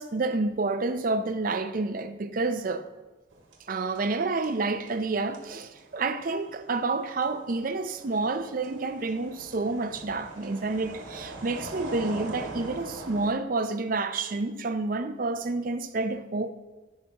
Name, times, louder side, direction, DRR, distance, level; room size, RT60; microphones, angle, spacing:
voice 1, 0.0-2.9 3.7-16.5, right 3 dB, 45° right, 0.5 m, -29 dB
sound 1, 3.3-4.2 4.4-13.3, right 1 dB, 80° right, 1.4 m, -42 dB
13.5 x 5.7 x 2.9 m
head